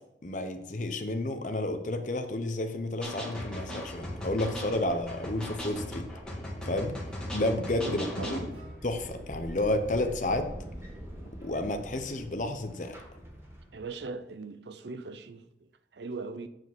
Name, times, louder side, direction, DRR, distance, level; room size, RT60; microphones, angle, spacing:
voice 1, 0.2-6.1 6.6-7.0 7.3-8.5 8.8-10.5 11.4-12.9, left 1 dB, 45° left, 0.9 m, -31 dB
sound 1, 3.0-8.5, left 1 dB, 5° left, 1.9 m, -38 dB
sound 2, 6.5-11.5, equal, 55° right, 2.8 m, -54 dB
voice 2, 7.8-8.5 13.7-16.5, right 3 dB, 80° right, 0.6 m, -40 dB
sound 3, 8.5-14.0, equal, 15° right, 1.4 m, -44 dB
7.7 x 5.0 x 6.1 m
head